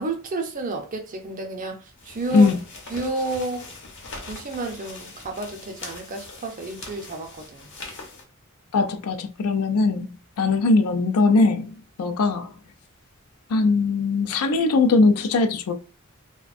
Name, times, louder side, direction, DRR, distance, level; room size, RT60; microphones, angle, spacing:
voice 1, 0.0-2.5 2.9-3.7 4.2-7.7, right 2 dB, 40° right, 0.5 m, -31 dB
sound 1, 2.0-8.2, left 3 dB, 55° left, 0.7 m, -41 dB
voice 2, 8.7-10.1 10.4-11.7 12.0-12.5 13.5-15.7, left 3 dB, 85° left, 0.4 m, -20 dB
2.4 x 2.2 x 2.4 m
head